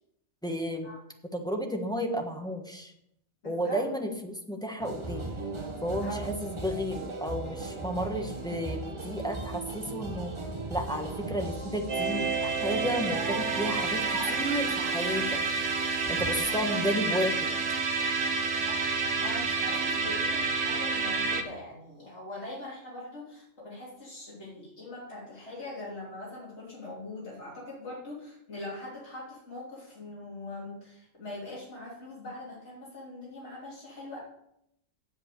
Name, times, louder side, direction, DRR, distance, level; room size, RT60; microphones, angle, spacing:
voice 1, 0.4-0.9 1.3-2.9 3.4-5.3 5.8-10.3 10.7-15.4 16.1-17.5, equal, 5° left, 2 dB, 1.3 m, -32 dB
voice 2, 3.4-3.8 6.0-6.3 16.5-16.6 18.6-18.7 19.2-34.2, left 2 dB, 75° left, -7 dB, 3.5 m, -42 dB
sound 1, 4.8-16.4, right 3 dB, 25° right, 1.2 m, -38 dB
sound 2, 11.9-21.4, right 4 dB, 85° right, 1.5 m, -29 dB
8.0 x 7.6 x 8.2 m, 0.78 s
omnidirectional pair, 1.2 m